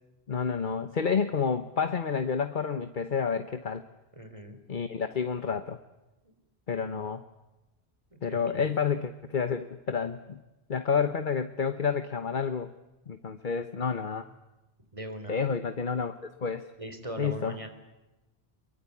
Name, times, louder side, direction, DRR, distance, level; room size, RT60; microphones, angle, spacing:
voice 1, 0.3-3.8 4.7-5.8 6.7-7.2 8.2-10.4 10.7-12.7 13.1-14.3 15.3-16.2 16.4-16.7 17.2-17.6, left 6 dB, 50° left, 10 dB, 1.2 m, -29 dB
voice 2, 4.2-4.6 6.7-6.8 8.1-8.6 14.9-15.4 16.8-17.7, right 1 dB, 30° right, 7 dB, 3.8 m, -40 dB
24.0 x 23.0 x 8.5 m, 1.0 s
omnidirectional pair, 1.1 m